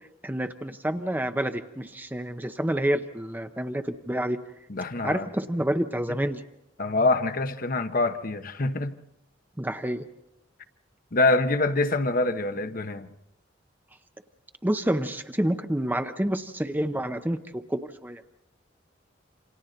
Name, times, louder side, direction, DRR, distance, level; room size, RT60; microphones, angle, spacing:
voice 1, 0.2-4.4 5.0-6.4 9.6-10.0 14.6-18.2, right 1 dB, 10° right, 0.7 m, -28 dB
voice 2, 4.7-5.2 6.8-9.0 11.1-13.1, left 2 dB, 50° left, 1.0 m, -25 dB
28.5 x 26.5 x 4.0 m
head